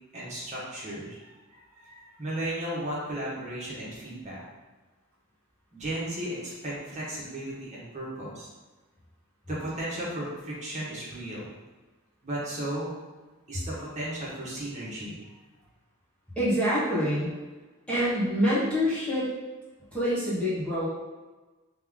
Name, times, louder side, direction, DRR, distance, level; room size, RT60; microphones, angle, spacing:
voice 1, 0.1-4.4 5.7-8.5 9.5-11.5 12.2-12.9 13.5-15.2, right 1 dB, 35° right, -7 dB, 1.3 m, -35 dB
voice 2, 16.4-17.3 17.9-19.3 19.9-20.9, equal, 5° left, -9 dB, 1.1 m, -26 dB
3.6 x 3.3 x 3.6 m, 1.2 s
head